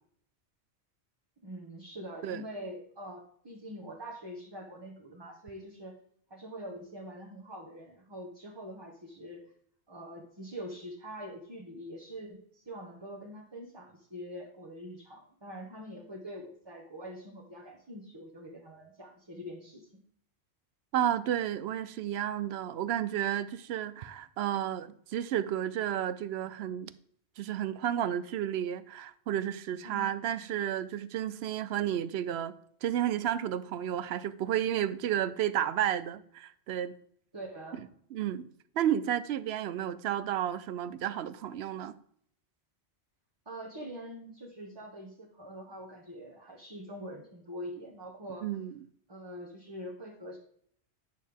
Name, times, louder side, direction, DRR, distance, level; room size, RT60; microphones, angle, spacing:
voice 1, 1.4-6.0 6.3-9.4 9.9-20.0 29.8-30.1 37.3-37.8 43.4-48.5 49.1-50.4, equal, 25° right, 1.1 m, -44 dB
voice 2, 20.9-26.9 27.4-32.5 32.8-37.0 38.1-38.5 38.8-41.9 48.4-48.8, right 10 dB, 70° right, 0.8 m, -32 dB
9.4 x 6.4 x 3.5 m
omnidirectional pair, 1.1 m